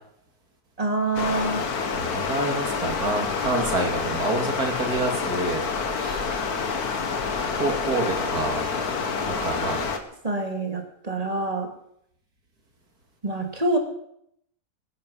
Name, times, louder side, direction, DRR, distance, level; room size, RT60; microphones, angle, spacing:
voice 1, 0.8-1.7 10.2-11.7 13.2-13.8, right 2 dB, 25° right, 3 dB, 2.4 m, -26 dB
Stream, 1.2-10.0, left 5 dB, 85° left, 1.9 m, -28 dB
voice 2, 2.0-5.6 5.9-6.4 7.5-8.7 9.3-9.8, right 2 dB, 85° right, 2 dB, 3.2 m, -28 dB
21.0 x 9.7 x 5.5 m, 0.73 s
omnidirectional pair, 1.6 m